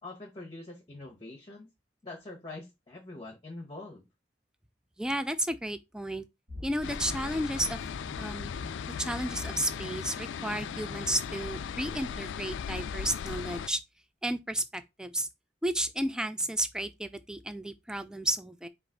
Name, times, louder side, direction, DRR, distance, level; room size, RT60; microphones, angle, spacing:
voice 1, 0.0-1.7 2.0-4.0, left 2 dB, 25° left, 1.1 m, -44 dB
voice 2, 5.0-6.2 6.6-7.8 8.2-8.5 9.0-13.8 14.2-15.3 15.6-18.7, right 1 dB, 5° right, 0.3 m, -32 dB
sound 1, 6.5-13.3, left 2 dB, 45° right, 1.6 m, -45 dB
sound 2, 6.8-13.7, left 7 dB, 80° left, 0.3 m, -38 dB
4.9 x 2.5 x 3.8 m
head